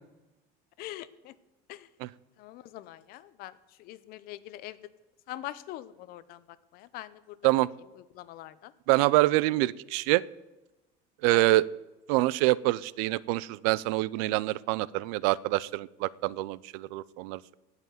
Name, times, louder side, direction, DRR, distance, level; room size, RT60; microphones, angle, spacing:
voice 1, 0.8-1.3 1.7-1.9 2.4-4.8 5.3-7.4 7.9-8.7 11.3-11.6, left 15 dB, 55° left, 16 dB, 0.8 m, -43 dB
voice 2, 8.9-10.2 11.2-11.6 12.1-17.5, right 19 dB, 85° right, 21 dB, 0.5 m, -26 dB
16.5 x 5.8 x 9.4 m, 1.0 s
cardioid pair, 155°, 19 cm